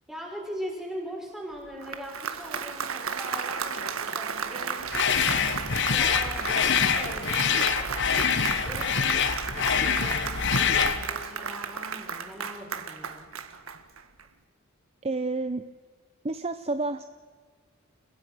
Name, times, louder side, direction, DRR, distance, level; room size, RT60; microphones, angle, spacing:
voice 1, 0.1-5.6 5.9-8.1 8.7-9.0 9.5-13.3, equal, ahead, -1 dB, 5.6 m, -41 dB
Applause, 1.6-14.2, right 6 dB, 75° right, 1.7 m, -34 dB
sound 1, 4.9-11.0, left 7 dB, 55° left, 1.4 m, -25 dB
voice 2, 15.0-15.6 16.2-17.1, right 3 dB, 30° right, 10 dB, 0.7 m, -29 dB
29.5 x 16.5 x 6.3 m, 1.5 s
head